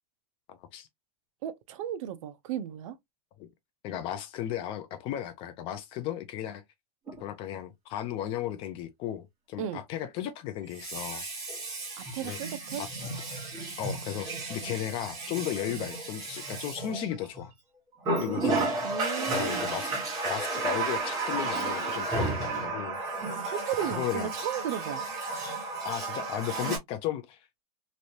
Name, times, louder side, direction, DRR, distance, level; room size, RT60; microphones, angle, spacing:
voice 1, 0.5-0.9 3.4-3.5 3.8-6.6 7.2-11.2 12.2-12.4 12.8-13.1 13.8-17.5 18.2-18.7 19.3-19.9 20.3-23.0 23.8-24.3 25.8-27.4, left 11 dB, 30° left, 0.4 m, -35 dB
voice 2, 1.4-3.0 9.6-9.8 12.0-12.8 18.8-19.8 23.4-25.1, right 10 dB, 55° right, 0.6 m, -35 dB
Water tap faucet, 7.1-7.2 10.6-17.5 18.0-26.8, right 3 dB, 20° right, 1.4 m, -33 dB
3.2 x 2.6 x 2.6 m
supercardioid pair, 165°, 19 cm